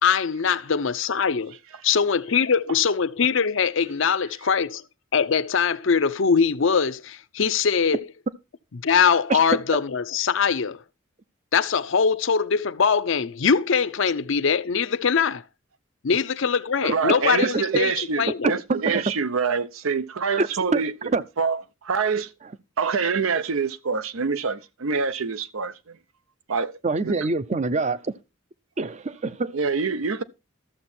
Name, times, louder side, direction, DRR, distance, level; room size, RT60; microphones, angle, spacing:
voice 1, 0.0-1.5 1.8-4.8 5.1-8.1 8.8-10.8 11.5-15.4 16.0-18.5, left 6 dB, 65° left, 0.6 m, -22 dB
voice 2, 16.8-20.9 21.4-22.3 22.8-26.0 26.5-26.8 27.0-27.1 29.5-30.2, right 5 dB, 80° right, 0.7 m, -26 dB
voice 3, 18.4-19.0 20.4-20.5 20.7-21.2 26.8-28.1 28.8-29.5, right 3 dB, 35° right, 0.5 m, -25 dB
12.5 x 7.1 x 4.3 m
head